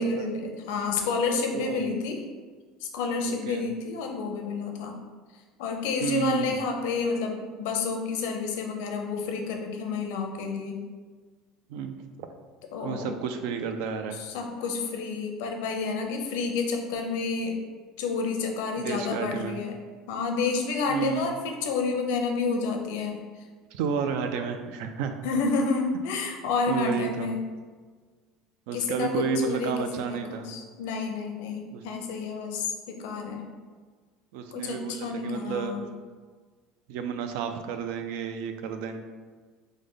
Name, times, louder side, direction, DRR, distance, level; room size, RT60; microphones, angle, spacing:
voice 1, 0.0-2.2 2.8-5.0 5.6-10.8 12.7-13.2 14.2-17.6 18.0-19.7 20.1-23.2 25.2-27.4 28.7-29.7 30.1-33.4 34.5-35.9, left 4 dB, 85° left, 3 dB, 0.5 m, -29 dB
voice 2, 1.5-1.9 3.3-3.7 6.0-6.6 11.7-12.3 12.8-14.2 18.8-19.6 20.9-21.3 23.7-25.1 26.7-27.3 28.7-30.5 31.7-31.8 34.3-35.8 36.9-39.0, right 6 dB, 80° right, 7 dB, 0.3 m, -31 dB
3.2 x 2.1 x 3.8 m, 1.5 s
cardioid pair, 145°, 0 cm